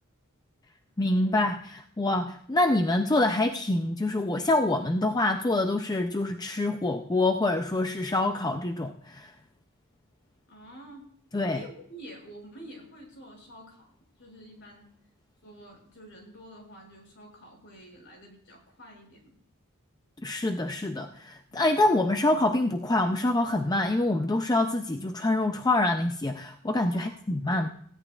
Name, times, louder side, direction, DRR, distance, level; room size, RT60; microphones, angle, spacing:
voice 1, 1.0-9.3 11.3-11.6 20.2-27.7, left 2 dB, 20° left, 6 dB, 0.5 m, -26 dB
voice 2, 10.5-11.1 11.5-13.9 14.2-14.9 15.4-19.3 26.9-27.7, right 1 dB, 55° left, -1 dB, 6.3 m, -48 dB
20.0 x 16.0 x 2.4 m, 0.63 s
head